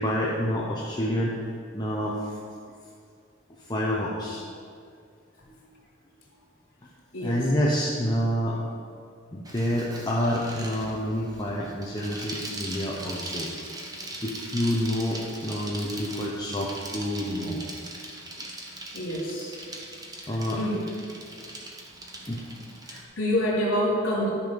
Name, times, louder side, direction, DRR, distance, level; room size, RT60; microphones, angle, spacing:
voice 1, 0.0-1.4 1.7-2.4 3.6-4.4 5.5-5.6 7.2-8.6 9.3-13.5 14.2-17.6 20.3-20.6 22.3-22.4, equal, 20° left, -5 dB, 0.9 m, -28 dB
Bicycle, 9.5-23.0, right 1 dB, 20° right, 1.1 m, -40 dB
voice 2, 18.9-19.7 20.5-20.8 22.2-22.3 22.9-24.3, equal, 80° left, -4 dB, 2.8 m, -27 dB
13.0 x 5.7 x 5.3 m, 2.2 s
head